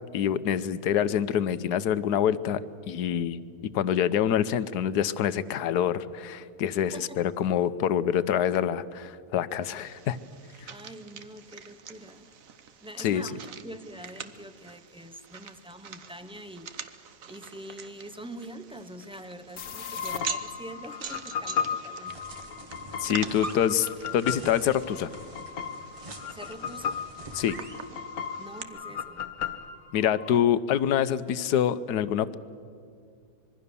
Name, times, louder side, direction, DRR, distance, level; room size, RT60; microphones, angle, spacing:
voice 1, 0.1-2.6 2.9-3.4 3.7-10.2 13.0-13.2 23.0-25.1 27.4-27.5 29.9-32.3, left 9 dB, 85° left, 14 dB, 1.3 m, -26 dB
sound 1, 9.6-28.6, right 7 dB, 60° right, 1.4 m, -45 dB
voice 2, 10.7-12.3 12.8-16.7 17.3-22.7 26.3-27.0 28.4-29.3, right 1 dB, 5° right, 11 dB, 0.4 m, -44 dB
sound 2, 19.6-30.4, left 7 dB, 70° left, 1.4 m, -36 dB
sound 3, 22.1-27.9, right 2 dB, 25° right, 1.2 m, -44 dB
25.5 x 22.0 x 6.9 m, 2.4 s
omnidirectional pair, 1.7 m